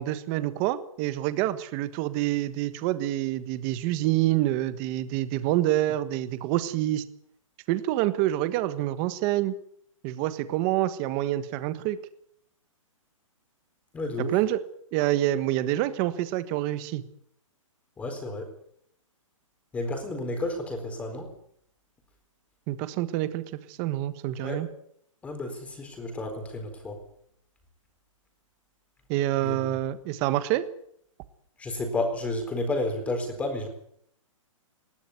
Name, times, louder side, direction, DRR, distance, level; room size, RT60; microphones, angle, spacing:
voice 1, 0.0-7.0 7.7-9.5 10.0-12.0 14.2-14.6 14.9-17.0 22.7-24.7 29.1-30.7, right 14 dB, 20° right, 13 dB, 1.4 m, -27 dB
voice 2, 13.9-14.4 18.0-18.5 19.7-21.3 24.4-24.6 25.2-27.0 29.4-29.8 31.6-33.7, left 2 dB, 10° left, 5 dB, 4.2 m, -31 dB
20.5 x 17.0 x 9.6 m, 0.70 s
hypercardioid pair, 165°, 17 cm